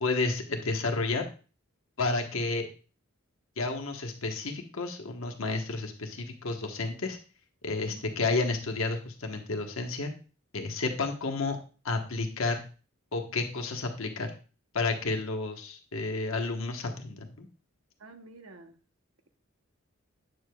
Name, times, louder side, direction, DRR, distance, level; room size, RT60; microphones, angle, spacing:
voice 1, 0.0-1.3 2.0-2.7 3.6-7.2 7.6-10.1 10.5-11.6 11.8-12.6 13.1-14.3 14.7-17.5, left 3 dB, 70° left, 1.1 m, -31 dB
voice 2, 18.0-18.7, right 2 dB, 80° right, 0.8 m, -49 dB
8.6 x 6.6 x 2.2 m
head